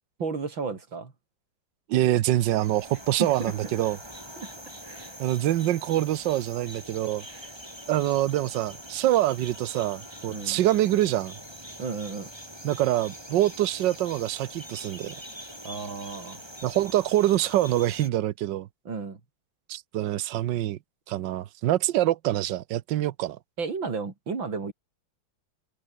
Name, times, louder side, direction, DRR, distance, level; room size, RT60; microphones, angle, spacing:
voice 1, 0.2-1.1 3.2-3.5 4.4-4.5 4.8-5.1 7.3-7.5 10.3-10.6 11.8-12.3 15.6-16.4 18.9-19.2 23.6-24.7, right 4 dB, 90° right, 4.1 m, -33 dB
voice 2, 1.9-4.0 5.2-7.2 7.9-11.3 12.6-15.1 16.6-18.7 19.7-20.8 21.1-23.4, right 14 dB, 75° right, 1.5 m, -25 dB
sound 1, 2.4-18.1, right 1 dB, 10° right, 7.3 m, -43 dB
omnidirectional pair, 2.0 m